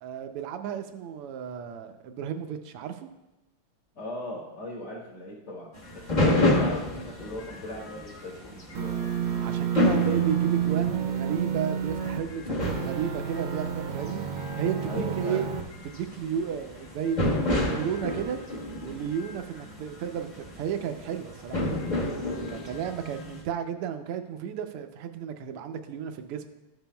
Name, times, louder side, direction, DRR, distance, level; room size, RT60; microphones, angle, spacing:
voice 1, 0.0-3.1 9.4-14.2 14.6-15.5 15.8-18.4 18.8-21.9 22.5-26.5, right 8 dB, 90° right, 7 dB, 1.6 m, -33 dB
voice 2, 3.9-9.1 14.8-15.4, left 1 dB, 75° left, -11 dB, 2.8 m, -39 dB
sound 1, 5.7-23.4, left 1 dB, 35° left, 0.7 m, -31 dB
sound 2, 8.7-12.2 12.6-15.6, right 9 dB, 75° right, 1.4 m, -29 dB
13.0 x 7.1 x 2.3 m, 0.98 s
omnidirectional pair, 2.4 m